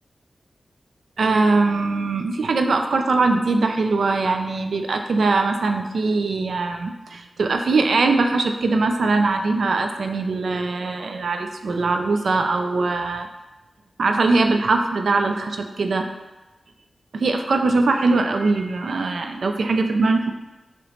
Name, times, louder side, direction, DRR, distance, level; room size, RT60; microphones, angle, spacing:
voice 1, 1.2-13.3 14.0-16.1 17.1-20.3, right 3 dB, 75° right, 5 dB, 0.4 m, -21 dB
4.8 x 3.0 x 3.0 m, 1.1 s
cardioid pair, 65°, 0 cm